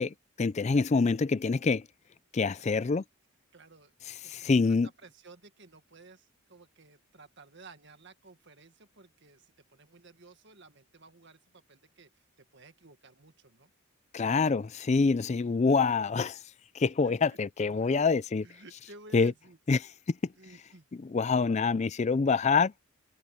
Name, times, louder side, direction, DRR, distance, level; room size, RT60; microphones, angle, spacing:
voice 1, 0.0-1.9 2.3-3.0 4.1-4.9 14.1-16.4 16.7-18.5 19.1-19.3 19.7-20.3 21.0-22.7, left 4 dB, 30° left, 0.4 m, -26 dB
voice 2, 3.5-3.9 4.2-4.8 5.0-13.7 17.0-17.4 17.8-17.9 18.4-19.6 20.4-20.9, right 3 dB, 55° right, 1.9 m, -55 dB
head